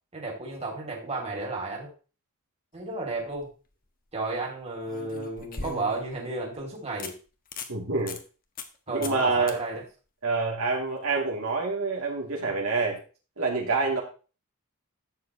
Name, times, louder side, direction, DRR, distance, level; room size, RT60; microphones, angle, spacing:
voice 1, 0.1-1.9 2.7-3.5 4.1-7.1 8.9-9.8 12.4-12.5, right 2 dB, 30° right, -1 dB, 2.9 m, -33 dB
sound 1, 3.1-3.5 4.9-6.2 6.6-6.7 7.0-7.1 7.5-7.7 8.1-8.2 8.6-8.8 9.0-9.2 9.5-9.6 12.7-12.8, left 4 dB, 40° left, 1.3 m, -38 dB
voice 2, 7.7-8.2 8.9-9.6 10.2-13.0 13.4-14.0, right 3 dB, 75° right, -1 dB, 2.9 m, -27 dB
12.0 x 8.4 x 3.1 m, 0.35 s
head